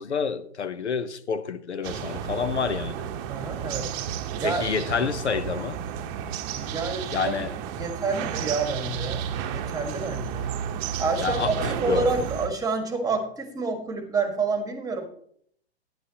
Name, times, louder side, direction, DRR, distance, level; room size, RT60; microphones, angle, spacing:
voice 1, 0.0-3.0 4.4-5.8 7.1-7.5 11.2-12.1, left 6 dB, 90° left, 0.8 m, -28 dB
sound 1, 1.8-12.5, right 8 dB, 35° right, 0.9 m, -32 dB
voice 2, 3.3-4.0 4.4-4.6 6.5-7.3 7.8-10.5 11.0-15.0, right 3 dB, 10° right, 1.6 m, -28 dB
11.0 x 10.0 x 2.8 m
hypercardioid pair, 115°, 33 cm